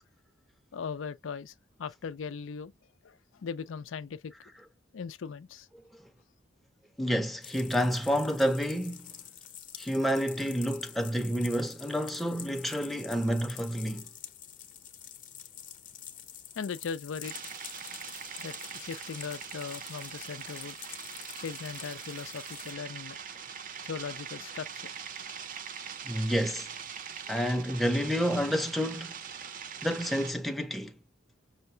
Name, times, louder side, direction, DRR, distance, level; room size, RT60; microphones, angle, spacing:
voice 1, 0.7-1.5 1.8-2.7 3.0-4.3 4.9-5.7 16.6-17.4 18.4-20.8 21.3-23.2 23.8-24.9, left 6 dB, 90° left, 0.4 m, -39 dB
voice 2, 7.0-9.1 9.8-14.1 26.0-26.7 27.3-29.2 29.8-31.0, equal, ahead, 0.5 m, -29 dB
sound 1, 7.4-22.7, left 10 dB, 45° left, 0.7 m, -47 dB
sound 2, 17.2-30.3, right 7 dB, 45° right, 0.5 m, -42 dB
5.7 x 2.1 x 2.7 m
head